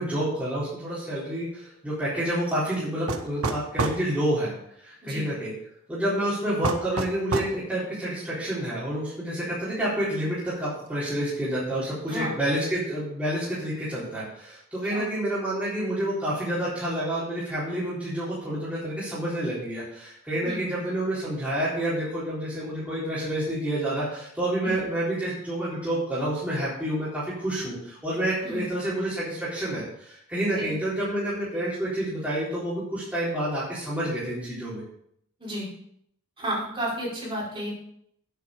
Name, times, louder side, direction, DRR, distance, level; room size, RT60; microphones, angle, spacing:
voice 1, 0.0-4.5 4.8-5.5 5.9-34.8, right 1 dB, 5° right, -11 dB, 3.9 m, -29 dB
sound 1, 3.1-4.0 6.6-7.6, right 3 dB, 85° right, 1.3 m, -27 dB
voice 2, 36.4-37.7, equal, 25° right, -7 dB, 4.9 m, -32 dB
9.6 x 8.3 x 5.1 m, 0.71 s
head